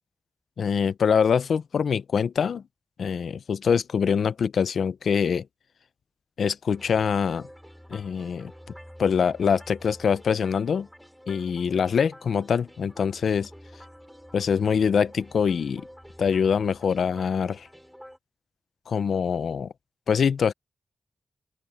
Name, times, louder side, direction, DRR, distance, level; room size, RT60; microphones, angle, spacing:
voice 1, 0.6-2.6 3.0-5.5 6.4-7.5 7.9-8.5 9.0-10.9 11.3-13.5 14.3-15.8 16.2-17.7 18.9-19.7 20.1-20.5, left 6 dB, 65° left, 0.6 m, -24 dB
sound 1, 6.7-18.2, equal, ahead, 4.4 m, -48 dB
open air
wide cardioid pair, 180°, 0 cm